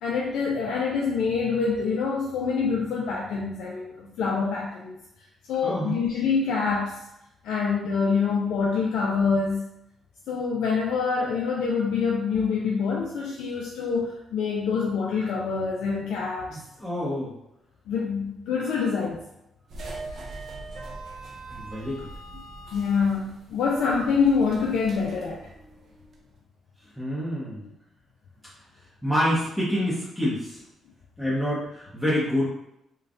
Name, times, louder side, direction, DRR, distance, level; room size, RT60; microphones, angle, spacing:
voice 1, 0.0-5.0 5.5-7.0 7.4-9.7 10.3-16.6 17.9-19.2 22.3-22.5 22.7-25.5, left 5 dB, 80° left, -2 dB, 0.3 m, -26 dB
voice 2, 5.6-5.9 16.5-17.3 21.5-22.0 27.0-27.7 29.0-30.6 31.2-32.5, equal, 5° left, -8 dB, 1.0 m, -27 dB
sound 1, 19.7-26.2, right 2 dB, 60° right, 0.6 m, -41 dB
3.2 x 2.2 x 2.5 m, 0.82 s
cardioid pair, 90°, 0 cm